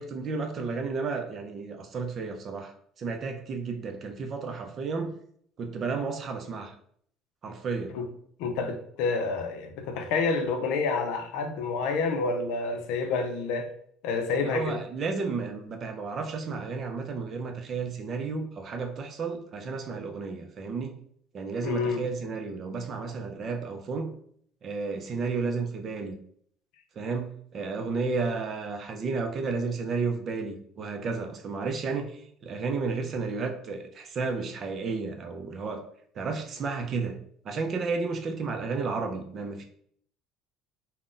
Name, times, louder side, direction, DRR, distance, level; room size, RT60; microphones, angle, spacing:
voice 1, 0.0-5.1 5.6-6.7 7.4-7.9 14.4-21.0 21.3-24.1 24.6-26.2 27.0-35.8 36.1-37.2 37.4-39.6, right 4 dB, 40° right, 0.4 m, -32 dB
voice 2, 8.4-13.7 14.0-14.8 21.6-22.1, left 4 dB, 80° left, 0.5 m, -28 dB
2.5 x 2.1 x 3.7 m
cardioid pair, 135°, 0 cm